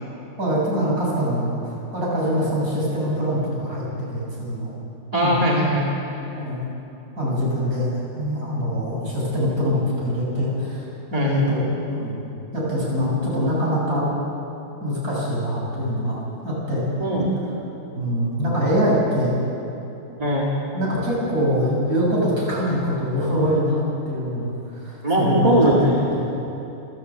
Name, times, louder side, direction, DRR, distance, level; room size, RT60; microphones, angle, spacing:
voice 1, 0.4-1.5 1.9-4.7 5.1-5.4 6.3-6.7 7.2-12.2 12.5-14.1 14.8-16.9 18.0-19.4 20.7-23.8 24.1-25.7 26.1-26.3, equal, 40° right, -6 dB, 7.1 m, -24 dB
voice 2, 5.1-5.9 11.1-11.4 17.0-17.6 20.2-20.5 25.0-26.1, right 1 dB, 20° right, -4 dB, 2.2 m, -20 dB
28.0 x 11.0 x 8.3 m, 2.9 s
omnidirectional pair, 2.3 m